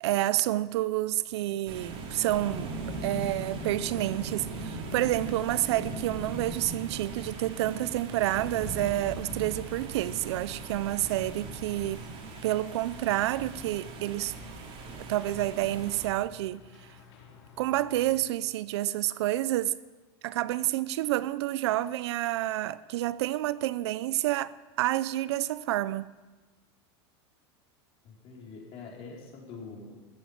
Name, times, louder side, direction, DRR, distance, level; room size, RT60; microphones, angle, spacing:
voice 1, 0.0-2.7 3.0-12.0 12.4-14.3 15.0-16.6 17.6-19.7 20.2-26.1, right 15 dB, 80° right, 0.6 m, -29 dB
sound 1, 1.7-16.1, right 3 dB, 45° right, 3.5 m, -39 dB
sound 2, 2.6-18.2, left 6 dB, 80° left, 4.4 m, -53 dB
voice 2, 28.0-30.0, left 4 dB, 45° left, 5.1 m, -44 dB
14.5 x 13.5 x 7.4 m
supercardioid pair, 140°, 14 cm